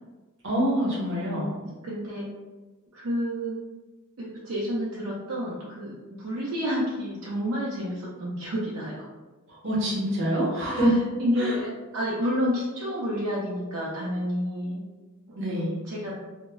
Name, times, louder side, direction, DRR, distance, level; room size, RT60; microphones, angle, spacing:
voice 1, 0.4-1.5 9.6-11.0 11.4-11.6 15.3-15.8, equal, 55° right, -5 dB, 0.8 m, -25 dB
voice 2, 1.6-2.3 2.9-3.6 4.2-9.0 10.5-10.9 11.2-14.8 15.3-15.6 15.8-16.1, equal, 75° right, -6 dB, 0.5 m, -30 dB
2.0 x 2.0 x 3.5 m, 1.2 s
head